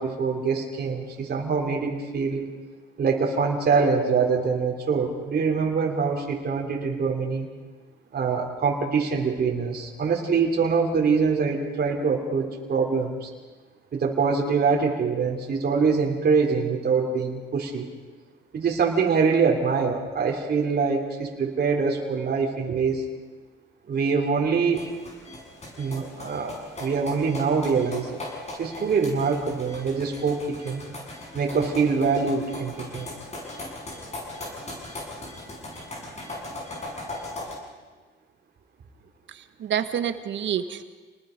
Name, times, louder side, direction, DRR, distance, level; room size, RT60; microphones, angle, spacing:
voice 1, 0.0-2.5 3.0-7.5 8.1-13.3 13.9-17.9 18.5-23.0 23.9-24.8 25.8-28.2 28.6-30.8 31.3-33.1 36.2-36.3, right 5 dB, 50° right, 0 dB, 3.3 m, -24 dB
sound 1, 24.7-37.5, left 2 dB, 35° left, 6.9 m, -39 dB
voice 2, 39.3-40.8, right 9 dB, 70° right, 10 dB, 1.5 m, -28 dB
28.5 x 20.0 x 5.2 m, 1.4 s
cardioid pair, 90°, 20 cm